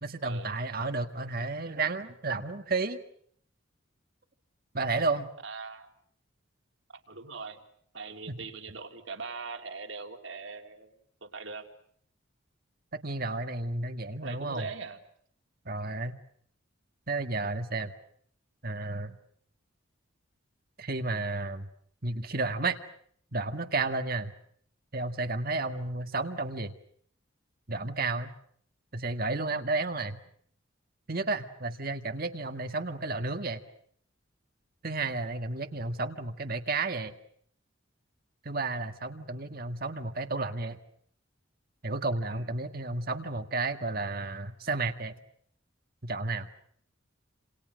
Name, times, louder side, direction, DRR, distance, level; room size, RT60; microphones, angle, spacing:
voice 1, 0.0-3.0 4.7-5.3 13.0-14.7 15.7-16.2 17.1-17.9 18.6-19.2 20.8-21.7 22.0-22.8 23.3-24.3 24.9-26.7 27.7-28.3 28.9-30.2 31.1-33.6 34.8-37.1 38.5-40.8 41.8-45.1 46.0-46.5, right 3 dB, 50° right, 8 dB, 1.7 m, -32 dB
voice 2, 5.4-5.9 6.9-7.6 7.9-10.9 11.2-11.7 14.2-15.0 42.3-42.5, right 4 dB, 65° right, 6 dB, 3.3 m, -41 dB
29.5 x 28.0 x 6.4 m, 0.64 s
head